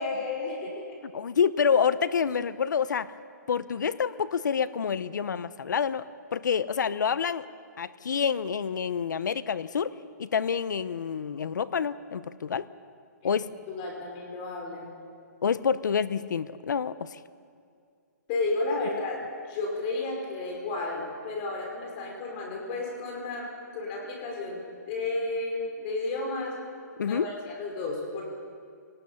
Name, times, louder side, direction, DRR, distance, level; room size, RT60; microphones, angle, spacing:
voice 1, 0.0-1.0 13.2-13.3 13.7-15.0 18.3-19.2 19.5-24.6 24.9-26.5 27.0-28.3, left 3 dB, 30° left, 0 dB, 5.3 m, -32 dB
voice 2, 1.1-3.1 3.5-7.4 7.8-9.9 10.2-12.7 13.2-13.5 15.4-17.2 27.0-27.3, left 7 dB, 80° left, 16 dB, 0.8 m, -27 dB
24.5 x 19.0 x 7.0 m, 2.2 s
hypercardioid pair, 160°, 10 cm